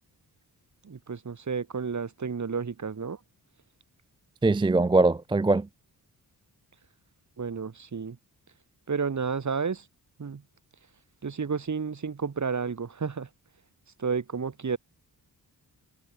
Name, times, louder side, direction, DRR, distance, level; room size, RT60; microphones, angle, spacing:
voice 1, 0.8-3.2 7.4-8.2 8.9-9.9 10.2-10.4 11.2-13.3 14.0-14.8, right 5 dB, 45° right, 3.1 m, -31 dB
voice 2, 4.4-5.7, right 2 dB, 15° right, 0.3 m, -22 dB
wide cardioid pair, 120°, 40 cm